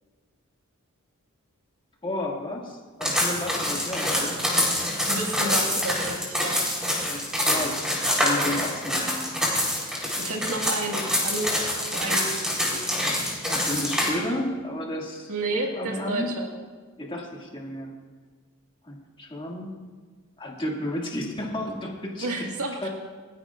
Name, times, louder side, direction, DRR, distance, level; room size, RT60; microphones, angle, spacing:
voice 1, 2.0-4.4 7.1-9.2 13.5-15.3 15.8-16.3 17.0-17.9 18.8-19.7 20.4-22.3 22.8-22.9, left 1 dB, 25° left, -2 dB, 2.2 m, -32 dB
sound 1, 3.0-14.1, left 1 dB, 5° right, 3.7 m, -26 dB
voice 2, 5.1-6.6 10.2-11.5 11.9-13.1 15.3-16.5 22.2-22.9, right 2 dB, 80° right, 0 dB, 1.9 m, -31 dB
28.0 x 10.5 x 2.5 m, 1.5 s
head